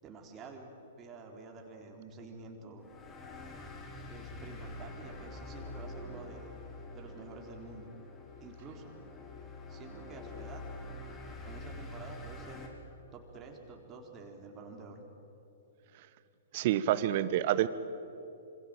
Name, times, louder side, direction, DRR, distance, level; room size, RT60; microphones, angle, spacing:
voice 1, 0.0-2.9 4.1-6.5 6.9-7.9 8.4-8.9 9.7-10.6 11.4-12.6 13.1-15.0, right 4 dB, 25° right, 2 dB, 4.0 m, -49 dB
sound 1, 2.8-12.7, left 2 dB, 20° left, 3.9 m, -46 dB
voice 2, 16.5-17.7, right 12 dB, 40° right, 15 dB, 1.2 m, -28 dB
27.0 x 26.5 x 7.9 m, 3.0 s
figure-of-eight pair, 110°, 0 cm